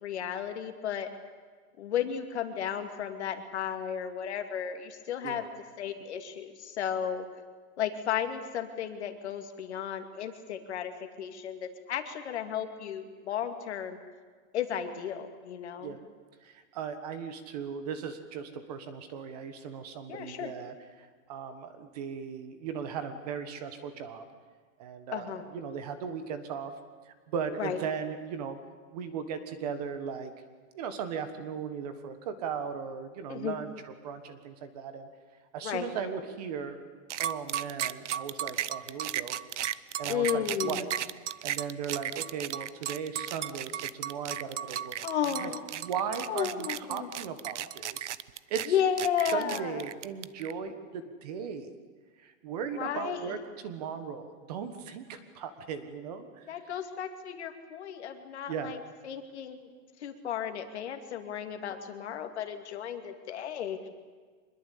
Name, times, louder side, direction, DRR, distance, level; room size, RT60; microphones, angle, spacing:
voice 1, 0.0-1.1 1.8-5.5 5.8-7.3 7.8-10.9 11.2-14.0 14.5-15.9 20.1-20.5 25.1-25.4 27.6-27.8 33.3-33.6 35.6-35.9 40.1-40.9 45.0-45.6 46.3-47.1 48.7-49.7 52.7-53.3 56.5-58.8 59.0-59.6 60.0-63.9, left 9 dB, 55° left, 6 dB, 2.6 m, -33 dB
voice 2, 16.4-24.2 24.8-26.7 27.0-28.6 28.9-30.3 30.7-35.1 35.5-36.8 37.2-39.3 40.0-40.9 41.4-45.0 45.4-48.1 48.5-48.8 49.3-51.7 52.2-53.4 53.6-56.5 58.5-58.8, right 7 dB, 30° right, 10 dB, 1.5 m, -37 dB
sound 1, 37.1-50.5, right 11 dB, 60° right, 0.9 m, -35 dB
25.0 x 21.5 x 8.5 m, 1.5 s
supercardioid pair, 180°, 41 cm